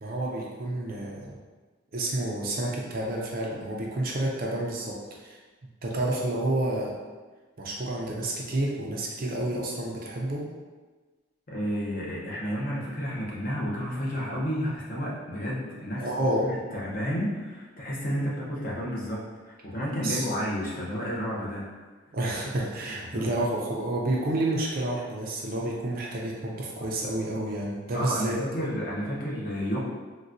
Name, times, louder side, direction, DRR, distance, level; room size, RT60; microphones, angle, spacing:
voice 1, 0.0-1.4 1.9-5.4 5.8-6.9 7.6-10.5 16.0-16.5 20.0-20.3 22.1-28.4, right 1 dB, 45° right, -2 dB, 0.5 m, -29 dB
voice 2, 11.5-21.6 23.1-23.3 27.9-29.8, equal, 40° left, -5 dB, 0.7 m, -31 dB
3.9 x 2.2 x 2.5 m, 1.3 s
head